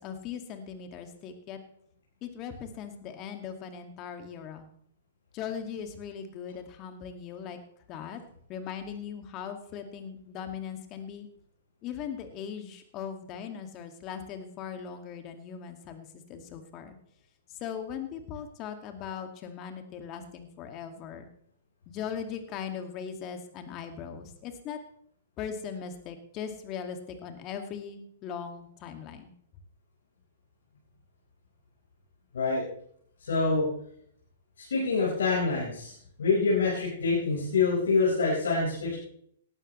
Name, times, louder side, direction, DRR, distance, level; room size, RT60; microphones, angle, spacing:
voice 1, 0.0-1.6 2.2-4.7 5.3-7.6 7.9-8.2 8.5-11.3 11.8-17.0 17.6-21.3 21.9-24.8 25.4-29.3, left 7 dB, 35° left, 6 dB, 2.2 m, -39 dB
voice 2, 33.2-33.7 34.7-35.9 36.2-39.0, left 4 dB, 70° left, -5 dB, 5.0 m, -26 dB
18.5 x 12.5 x 3.2 m, 0.66 s
figure-of-eight pair, 115°, 0 cm